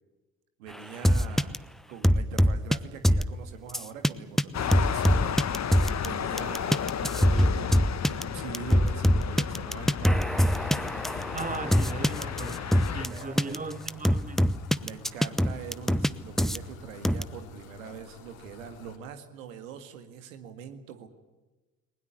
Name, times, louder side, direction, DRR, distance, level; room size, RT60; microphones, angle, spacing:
voice 1, 0.6-1.6 1.9-10.5 12.9-13.6 14.8-21.1, right 8 dB, 75° right, 2.0 m, -43 dB
sound 1, 1.0-1.6 2.0-2.8 3.0-3.3 3.7-4.1 4.4-4.5 4.7-6.1 6.4-13.1 13.4-13.6 13.9-16.1 16.4-16.6 17.0-17.2, equal, ahead, 1.0 m, -23 dB
sound 2, 4.5-13.1, left 8 dB, 40° left, 1.6 m, -33 dB
sound 3, 10.4-19.0, left 7 dB, 65° left, 3.1 m, -49 dB
voice 2, 11.3-14.5, right 3 dB, 20° right, 2.2 m, -38 dB
21.0 x 20.5 x 9.7 m
figure-of-eight pair, 45°, 41 cm